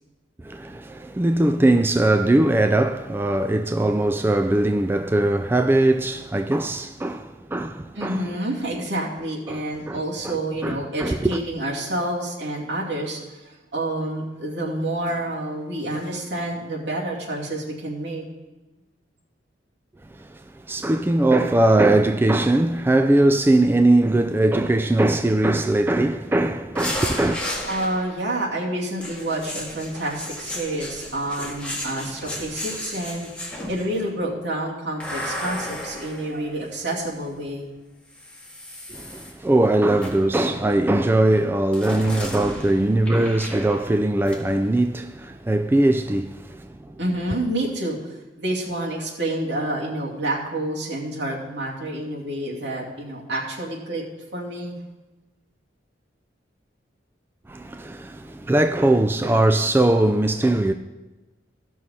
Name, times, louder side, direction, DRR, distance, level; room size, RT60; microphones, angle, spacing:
voice 1, 0.4-8.2 9.5-10.4 10.6-11.4 20.2-20.4 20.7-27.4 38.9-47.0 57.5-60.7, right 1 dB, 10° right, 0.3 m, -20 dB
voice 2, 7.9-18.2 27.7-37.7 47.0-54.0 54.3-54.8, right 1 dB, 70° right, 2.5 m, -28 dB
sound 1, 26.8-28.3 29.0-34.0 35.0-37.2 38.1-39.3 40.0-40.4 41.7-44.0 44.3-44.4, left 1 dB, 5° left, 1.9 m, -34 dB
15.5 x 6.3 x 4.2 m
head